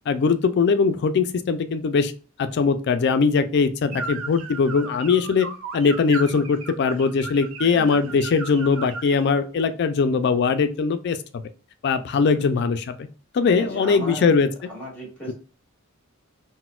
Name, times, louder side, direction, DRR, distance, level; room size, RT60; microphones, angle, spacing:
voice 1, 0.1-2.1 2.4-5.5 5.7-11.4 11.8-12.9 13.3-14.5, left 5 dB, 55° left, 10 dB, 0.3 m, -21 dB
sound 1, 3.9-9.3, right 4 dB, 70° right, 0.5 m, -36 dB
voice 2, 7.7-8.2 12.3-12.5 13.5-15.3, right 1 dB, 5° left, -4 dB, 1.6 m, -37 dB
3.9 x 2.1 x 2.3 m, 0.37 s
head